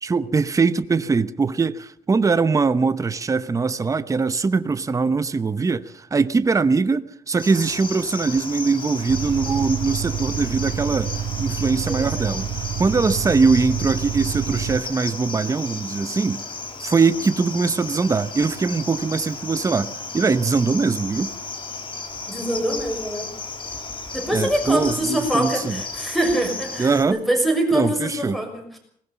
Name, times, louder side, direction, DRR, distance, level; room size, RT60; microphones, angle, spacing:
voice 1, 0.0-11.1 11.4-12.5 12.8-16.4 16.8-21.3 24.3-25.8 26.8-27.2 27.7-28.4, right 4 dB, 20° right, 0.9 m, -21 dB
Cricket, 7.4-27.0, left 4 dB, 35° left, 3.5 m, -34 dB
sound 1, 9.1-14.8, right 8 dB, 85° right, 1.9 m, -28 dB
voice 2, 11.9-12.3 22.3-23.3 24.1-28.8, right 1 dB, ahead, 6.4 m, -24 dB
21.0 x 19.5 x 6.9 m
cardioid pair, 145°, 15 cm